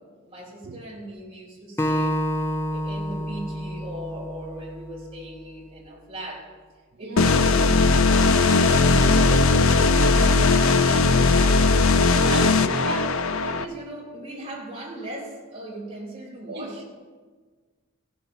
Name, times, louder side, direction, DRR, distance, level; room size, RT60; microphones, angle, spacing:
voice 1, 0.0-2.2 2.7-6.5 7.0-11.7 12.1-12.6 12.8-16.8, right 1 dB, 25° right, -4 dB, 3.6 m, -38 dB
Acoustic guitar, 1.8-5.1, equal, 10° left, 0.5 m, -28 dB
voice 2, 7.0-7.4 12.1-13.1 16.5-16.9, right 3 dB, 50° right, 2 dB, 0.7 m, -35 dB
sound 1, 7.2-13.6, left 3 dB, 75° left, 0.6 m, -18 dB
15.5 x 6.6 x 7.0 m, 1.4 s
head